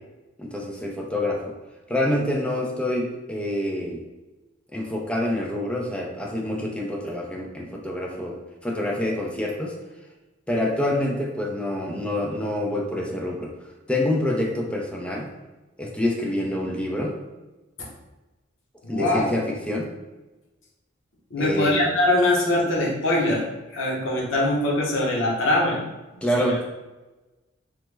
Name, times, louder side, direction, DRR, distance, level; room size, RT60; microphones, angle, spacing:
voice 1, 0.4-1.5 1.9-4.0 4.7-9.8 10.5-13.5 13.9-15.3 15.8-17.2 18.9-19.9 21.4-21.9 26.2-26.6, left 1 dB, 5° left, -1 dB, 0.4 m, -27 dB
voice 2, 18.8-19.3 21.3-25.8 26.1-26.6, left 1 dB, 85° left, -3 dB, 0.8 m, -23 dB
3.2 x 2.0 x 3.2 m, 1.1 s
head